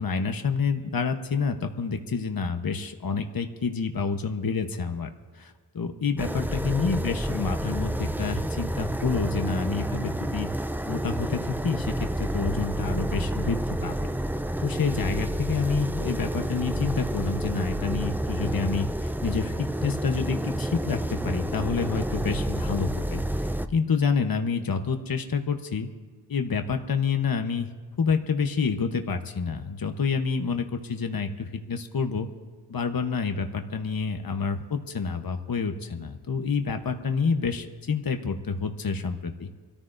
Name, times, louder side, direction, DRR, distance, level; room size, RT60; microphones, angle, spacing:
voice 1, 0.0-5.1 5.3-10.5 10.9-14.1 14.6-23.2 23.7-25.9 26.3-27.7 28.0-32.3 32.7-39.5, left 5 dB, 55° left, 6 dB, 1.0 m, -28 dB
sound 1, 6.2-23.7, right 1 dB, 5° right, 0.5 m, -29 dB
25.5 x 14.0 x 2.6 m, 1.5 s
wide cardioid pair, 60°, 42 cm